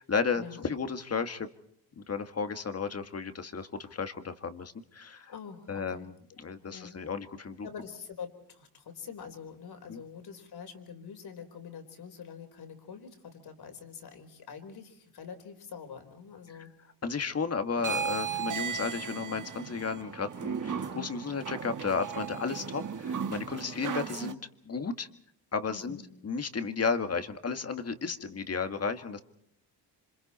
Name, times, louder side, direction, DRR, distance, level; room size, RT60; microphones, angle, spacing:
voice 1, 0.0-1.5 2.0-5.3 5.7-6.1 6.4-7.7 9.9-10.0 17.0-25.1 25.5-26.0 26.2-29.2, left 5 dB, 35° left, 7 dB, 1.8 m, -33 dB
voice 2, 5.3-6.1 6.5-7.0 7.6-16.7 18.2-18.5 25.7-26.1, left 6 dB, 60° left, 6 dB, 4.2 m, -45 dB
sound 1, 17.8-24.3, right 7 dB, 45° right, 1.6 m, -36 dB
28.0 x 26.0 x 4.3 m, 0.70 s
cardioid pair, 95°, 43 cm